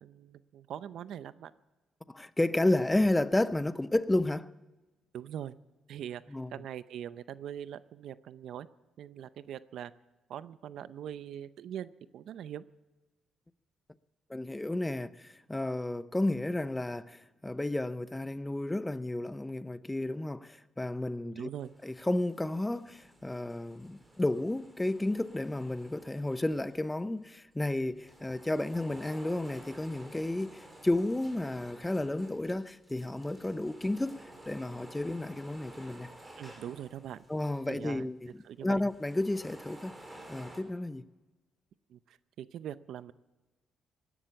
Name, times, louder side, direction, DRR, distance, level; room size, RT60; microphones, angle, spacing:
voice 1, 0.0-1.5 5.1-5.6 5.9-8.7 9.0-9.9 10.3-12.6 21.2-21.7 36.4-37.2 37.7-38.1 38.4-38.8 41.9-43.1, right 10 dB, 75° right, 0.6 m, -42 dB
voice 2, 2.1-4.5 6.3-6.5 14.3-21.5 21.8-36.1 37.3-38.3 38.6-39.9 40.3-41.0, left 1 dB, 10° left, 0.6 m, -32 dB
sound 1, 21.6-27.2 27.8-38.0 38.2-38.3 38.7-40.6, right 1 dB, 15° right, 3.7 m, -53 dB
17.5 x 11.0 x 7.0 m
cardioid pair, 90°, 0 cm